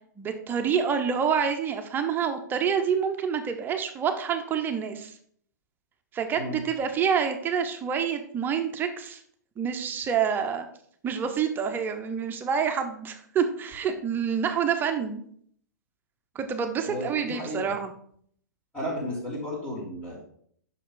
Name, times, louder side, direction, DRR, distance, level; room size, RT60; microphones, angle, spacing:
voice 1, 0.2-5.1 6.1-9.2 9.6-10.7 11.0-15.2 16.3-17.9, right 7 dB, 20° right, 6 dB, 0.8 m, -27 dB
voice 2, 16.9-17.7 18.7-20.2, left 1 dB, 15° left, -8 dB, 2.5 m, -33 dB
7.5 x 5.9 x 3.9 m, 0.62 s
figure-of-eight pair, 115°, 10 cm